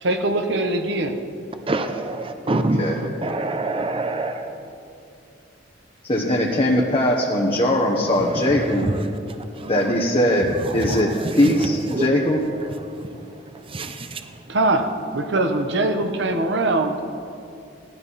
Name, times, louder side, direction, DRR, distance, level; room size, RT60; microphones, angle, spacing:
voice 1, 0.0-1.2 14.5-17.0, right 2 dB, 70° right, 6 dB, 1.0 m, -22 dB
voice 2, 1.7-4.5 8.8-8.9 9.6-9.7 11.2-11.5 11.9-12.1 13.7-14.0, right 2 dB, 30° right, 7 dB, 0.7 m, -25 dB
voice 3, 6.1-8.9 9.7-12.4, left 1 dB, 30° left, -2 dB, 1.1 m, -20 dB
17.5 x 12.5 x 4.2 m, 2.5 s
head